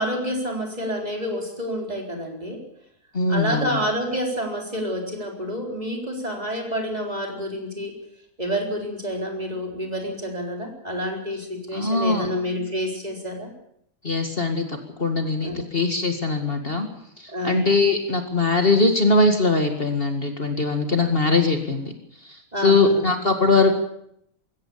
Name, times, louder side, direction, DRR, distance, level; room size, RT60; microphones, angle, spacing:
voice 1, 0.0-2.6 3.3-8.0 8.4-13.5 15.4-15.6 17.3-17.6 21.0-21.1 22.5-23.1, equal, 25° right, 2 dB, 4.5 m, -28 dB
voice 2, 3.1-3.8 11.7-12.3 14.0-16.9 17.2-21.9 22.6-23.8, left 3 dB, 40° left, 5 dB, 2.3 m, -21 dB
22.0 x 16.5 x 8.7 m, 0.72 s
omnidirectional pair, 1.6 m